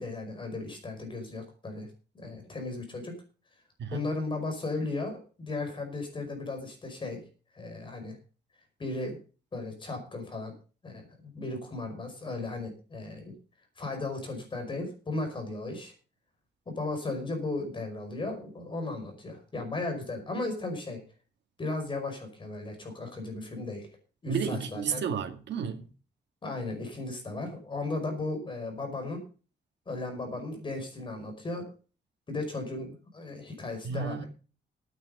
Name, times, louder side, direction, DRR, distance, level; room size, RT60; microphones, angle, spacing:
voice 1, 0.0-1.9 2.1-3.1 3.9-7.2 7.5-8.2 8.8-9.2 9.5-10.5 10.8-13.3 13.8-15.9 16.7-21.0 21.6-24.0 24.2-25.0 26.4-29.2 29.9-31.7 32.3-34.3, left 2 dB, 30° left, 5.1 m, -36 dB
voice 2, 24.3-25.9 33.8-34.2, right 6 dB, 85° right, 2.1 m, -32 dB
12.0 x 9.3 x 5.5 m
wide cardioid pair, 180°, 18 cm